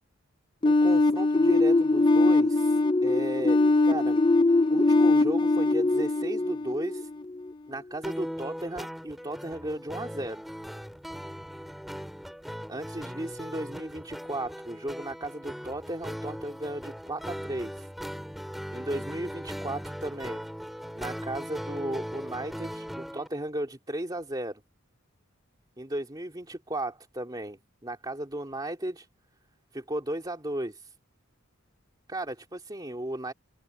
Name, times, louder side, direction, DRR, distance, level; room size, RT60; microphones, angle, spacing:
sound 1, 0.6-7.4, left 2 dB, 20° left, 0.7 m, -22 dB
voice 1, 0.6-4.2 4.7-7.1 7.7-10.4 12.7-17.9 18.7-20.4 20.9-24.6 25.8-29.1 29.7-30.9 32.1-33.3, right 1 dB, 20° right, 2.7 m, -35 dB
sound 2, 8.0-23.3, equal, ahead, 2.8 m, -39 dB
open air
head